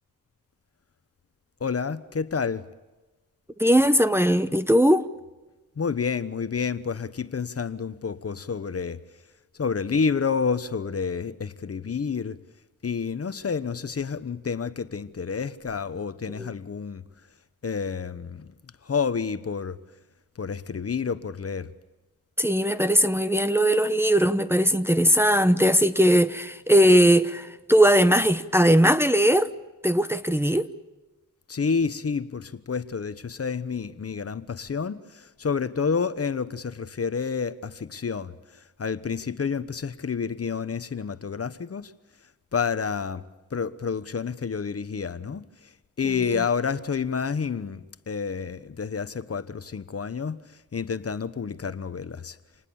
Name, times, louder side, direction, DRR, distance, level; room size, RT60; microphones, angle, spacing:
voice 1, 1.6-2.6 5.8-9.0 9.6-12.4 12.8-17.0 17.6-18.5 18.8-19.8 20.4-21.7 31.5-38.3 38.8-41.9 42.5-43.2 43.5-45.4 46.0-50.4 50.7-52.4, left 5 dB, 40° left, 1.1 m, -29 dB
voice 2, 3.6-5.1 16.4-16.5 22.4-29.5 29.8-30.7, equal, 5° right, 0.9 m, -19 dB
28.0 x 20.0 x 7.1 m
cardioid pair, 80°, 35 cm